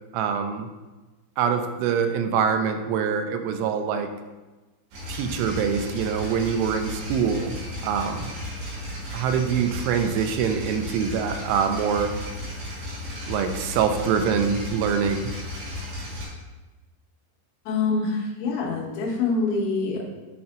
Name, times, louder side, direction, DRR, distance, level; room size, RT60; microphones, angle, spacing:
voice 1, 0.1-0.7 1.4-4.1 5.1-7.6 7.8-8.3 9.1-12.1 13.3-15.3, right 6 dB, 90° right, 7 dB, 3.0 m, -24 dB
sound 1, 4.9-16.3, left 1 dB, 70° right, 4.1 m, -35 dB
voice 2, 17.7-20.1, left 4 dB, 90° left, -2 dB, 3.5 m, -25 dB
10.5 x 4.3 x 2.5 m, 1.2 s
omnidirectional pair, 5.4 m